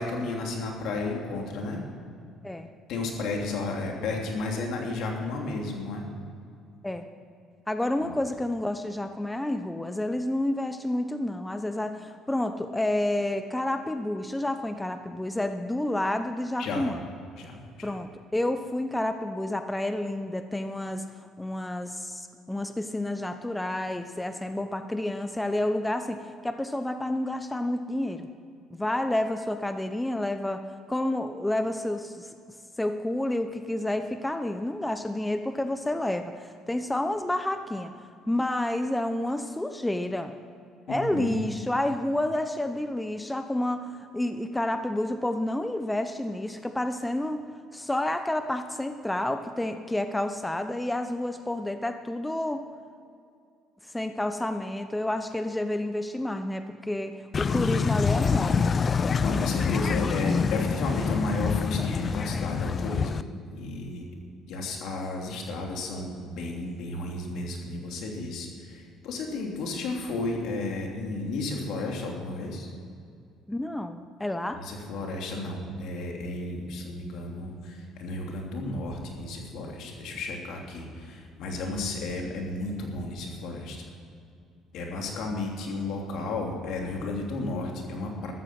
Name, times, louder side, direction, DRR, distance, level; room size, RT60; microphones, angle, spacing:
voice 1, 0.0-1.8 2.9-6.1 8.0-8.2 16.6-16.9 17.4-17.9 40.9-41.4 59.2-63.2 63.5-64.0 64.5-72.7 74.6-83.8 84.7-88.3, left 2 dB, 70° left, 1 dB, 3.0 m, -33 dB
voice 2, 7.7-17.0 17.8-28.3 28.7-30.6 30.9-32.3 32.8-37.9 38.3-40.3 40.9-47.5 47.7-52.7 53.9-58.7 73.5-74.6, left 1 dB, 10° left, 8 dB, 0.8 m, -29 dB
sound 1, 57.3-63.2, left 5 dB, 40° left, 0.5 m, -26 dB
13.5 x 13.5 x 6.2 m, 2.4 s
supercardioid pair, 75°, 0 cm